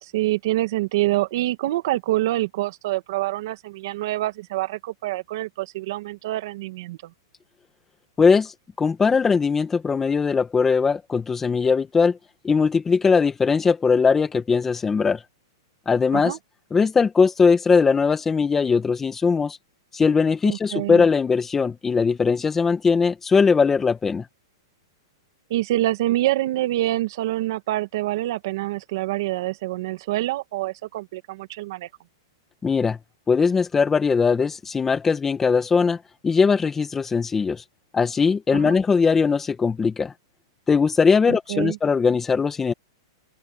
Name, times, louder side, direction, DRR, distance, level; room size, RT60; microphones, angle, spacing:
voice 1, 0.0-7.1 16.1-16.4 20.4-21.0 25.5-31.9 38.5-38.8 41.3-41.8, right 16 dB, 55° right, 1.8 m, -26 dB
voice 2, 8.2-8.5 8.8-12.2 12.4-15.2 15.9-16.3 16.7-19.6 19.9-24.2 32.6-33.0 33.3-36.0 36.2-37.6 37.9-40.1 40.7-42.7, left 5 dB, 10° left, 1.7 m, -20 dB
open air
hypercardioid pair, 145°, 2 cm